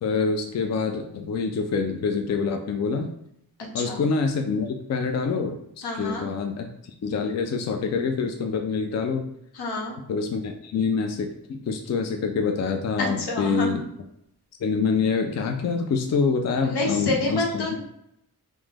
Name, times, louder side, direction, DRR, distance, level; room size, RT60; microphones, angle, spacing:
voice 1, 0.0-3.1 3.7-6.7 7.0-9.3 10.1-13.8 14.6-17.7, left 5 dB, 45° left, 4 dB, 0.4 m, -26 dB
voice 2, 5.8-6.2 9.5-10.0 13.0-13.9 16.6-17.8, left 2 dB, 75° left, -1 dB, 0.9 m, -28 dB
3.1 x 2.0 x 3.4 m, 0.77 s
cardioid pair, 50°, 39 cm